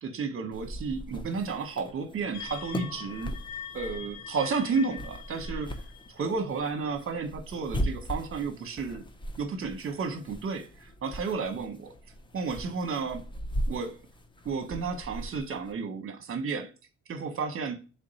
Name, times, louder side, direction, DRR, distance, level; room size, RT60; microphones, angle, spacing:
voice 1, 0.0-3.3 3.7-5.8 6.1-9.0 9.4-11.9 12.3-13.3 13.7-14.0 14.4-16.7 17.1-17.7, right 5 dB, 45° right, 0.9 m, -32 dB
sound 1, 0.5-15.7, equal, 15° left, 0.5 m, -39 dB
sound 2, 2.3-6.8, left 8 dB, 75° left, 0.5 m, -44 dB
3.4 x 2.6 x 4.0 m
cardioid pair, 90°, 30 cm